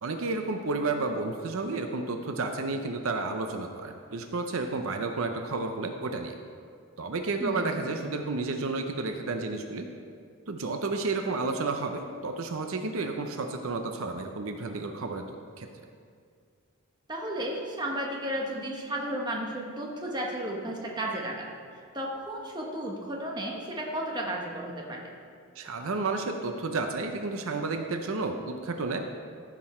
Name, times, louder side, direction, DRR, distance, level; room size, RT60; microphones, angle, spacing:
voice 1, 0.0-6.4 7.0-9.9 10.5-15.7 25.6-29.0, right 3 dB, 70° right, 5 dB, 0.6 m, -31 dB
voice 2, 7.4-7.8 17.1-21.5 21.9-25.1, right 1 dB, 20° right, -1 dB, 1.1 m, -33 dB
14.0 x 6.1 x 4.3 m, 2.2 s
head